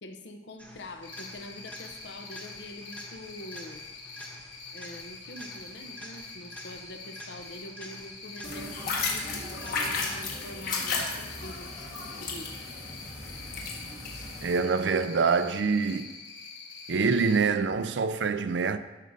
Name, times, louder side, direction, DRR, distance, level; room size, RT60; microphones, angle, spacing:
voice 1, 0.0-3.8 4.7-11.7 12.2-12.7, left 1 dB, 70° left, 0.8 m, -44 dB
sound 1, 0.6-10.2 18.2-18.3, equal, 10° left, 1.0 m, -48 dB
Cricket, 1.0-17.4, left 4 dB, 85° left, 1.5 m, -45 dB
sound 2, 8.4-14.6, left 3 dB, 50° left, 1.5 m, -34 dB
voice 2, 14.4-16.1 16.9-18.8, right 5 dB, 70° right, 0.4 m, -25 dB
12.5 x 6.4 x 2.7 m
head